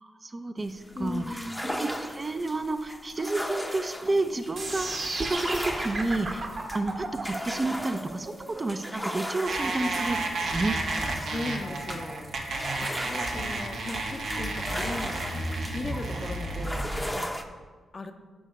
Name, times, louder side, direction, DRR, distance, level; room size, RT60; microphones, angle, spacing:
voice 1, 0.0-6.5 6.7-8.3 8.6-10.8, right 2 dB, 35° right, 8 dB, 0.5 m, -30 dB
sound 1, 0.6-17.4, equal, 5° left, 0.7 m, -38 dB
voice 2, 0.9-1.7 9.8-9.9 11.1-12.4 12.8-15.2 15.7-17.3 17.9-18.1, left 2 dB, 45° left, 6 dB, 0.6 m, -37 dB
sound 2, 4.6-10.6, right 2 dB, 55° right, 1.6 m, -34 dB
sound 3, 9.5-17.1, right 2 dB, 70° right, 1.0 m, -32 dB
6.3 x 4.5 x 5.0 m, 1.5 s
supercardioid pair, 45°, 0 cm